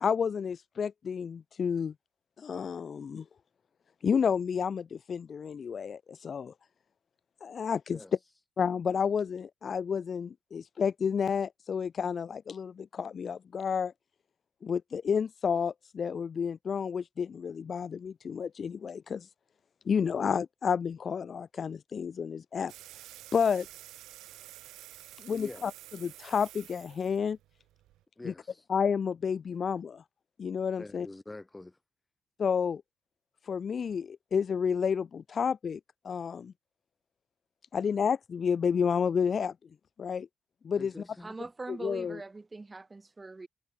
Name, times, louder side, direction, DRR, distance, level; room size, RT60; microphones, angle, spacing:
voice 1, 0.0-1.9 2.4-3.2 4.0-6.5 7.4-8.0 8.6-13.9 14.6-19.3 19.9-22.7 23.3-23.7 25.2-25.7 26.0-27.4 28.2-28.3 28.7-30.0 30.4-31.1 32.4-32.8 33.5-35.8 36.0-36.5 37.7-39.5 40.0-40.3 40.6-40.9 41.7-42.2, left 6 dB, 35° left, 0.7 m, -30 dB
sound 1, 22.7-28.0, right 15 dB, 85° right, 2.2 m, -50 dB
voice 2, 25.3-25.7 28.2-28.7 30.8-31.8 40.7-41.4, left 2 dB, 10° left, 1.6 m, -46 dB
voice 3, 41.2-43.5, right 3 dB, 15° right, 6.1 m, -42 dB
cardioid pair, 155°, 0 cm